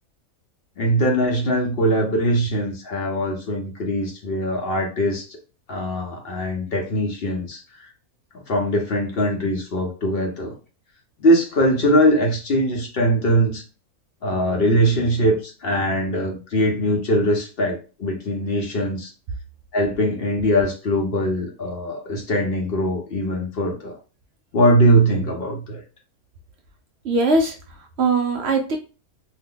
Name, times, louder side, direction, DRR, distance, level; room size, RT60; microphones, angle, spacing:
voice 1, 0.8-5.4 5.7-7.6 8.5-10.5 11.2-13.6 14.2-19.1 19.7-23.9 24.5-25.8, equal, 55° left, 1 dB, 0.7 m, -21 dB
voice 2, 27.0-28.8, right 3 dB, 70° right, 3 dB, 0.6 m, -21 dB
2.7 x 2.1 x 3.6 m, 0.34 s
omnidirectional pair, 1.6 m